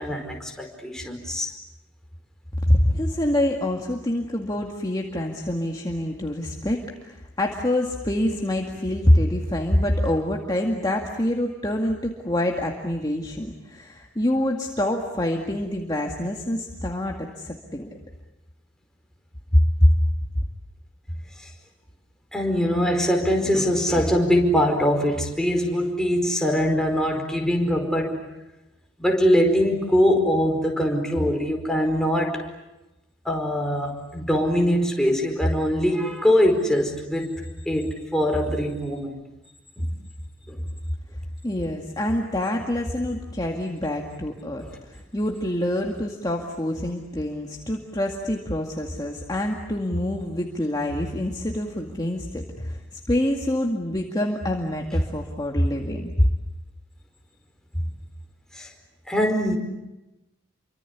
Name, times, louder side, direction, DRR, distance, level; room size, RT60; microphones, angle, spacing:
voice 1, 0.0-1.5 22.3-28.1 29.0-32.4 33.2-37.3 37.6-39.2 39.8-39.9 40.5-40.6 55.6-55.7 58.5-58.7 59.1-59.6, equal, 5° left, 1 dB, 4.9 m, -22 dB
voice 2, 2.7-17.9 19.5-19.9 20.3-20.4 41.4-56.3, left 1 dB, 20° left, 1 dB, 2.1 m, -25 dB
29.0 x 25.0 x 8.4 m, 0.98 s
head